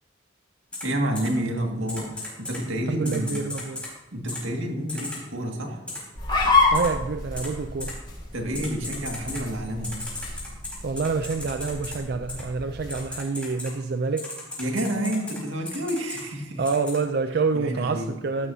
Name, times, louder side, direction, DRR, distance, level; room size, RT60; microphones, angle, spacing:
Typing, 0.7-0.8 1.1-1.3 1.9-2.6 3.0-3.9 4.3-4.4 4.9-5.2 5.9-6.0 6.7-6.9 7.4-7.5 7.8-7.9 8.5-9.4 9.8-11.9 12.3-12.4 12.9-13.7 14.2-15.4 15.7-16.2 16.6-17.0, left 2 dB, 5° left, 4.4 m, -35 dB
voice 1, 0.8-3.5 4.1-5.8 8.3-9.9 14.6-16.6 17.5-18.1, right 1 dB, 85° right, 2 dB, 2.0 m, -29 dB
voice 2, 2.9-3.8 6.7-8.0 10.8-14.4 16.6-18.5, right 4 dB, 55° right, 8 dB, 0.4 m, -27 dB
sound 1, 6.2-13.0, left 3 dB, 25° left, 3.8 m, -28 dB
15.0 x 12.0 x 2.8 m, 1.0 s
head